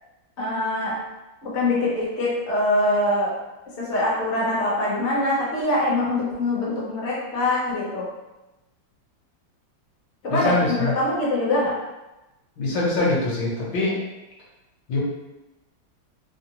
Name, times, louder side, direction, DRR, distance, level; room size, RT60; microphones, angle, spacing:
voice 1, 0.4-1.0 1.4-3.3 3.8-8.0 10.2-11.7, left 1 dB, 50° left, -7 dB, 0.9 m, -23 dB
voice 2, 10.3-10.9 12.6-14.0 14.9-15.0, left 2 dB, 70° left, -5 dB, 1.5 m, -23 dB
3.5 x 2.0 x 2.8 m, 1.0 s
omnidirectional pair, 2.2 m